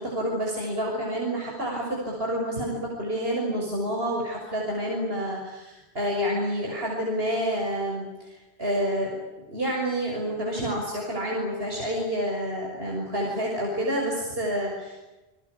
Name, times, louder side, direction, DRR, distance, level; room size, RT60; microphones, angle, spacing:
voice 1, 0.0-9.1 9.5-15.1, equal, 65° right, -1 dB, 6.5 m, -28 dB
29.0 x 22.0 x 8.6 m, 1.1 s
omnidirectional pair, 1.1 m